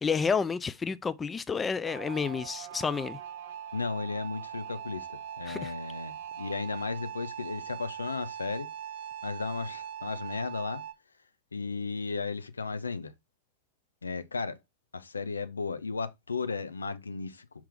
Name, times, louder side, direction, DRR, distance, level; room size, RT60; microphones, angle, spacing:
voice 1, 0.0-3.2 5.5-5.7, left 5 dB, 15° left, 0.4 m, -30 dB
sound 1, 1.9-10.9, right 9 dB, 55° right, 0.7 m, -41 dB
voice 2, 3.7-8.7 9.2-10.8 11.5-13.1 14.0-14.6 14.9-17.5, left 4 dB, 75° left, 0.5 m, -35 dB
5.8 x 4.5 x 3.6 m
figure-of-eight pair, 90°, 0 cm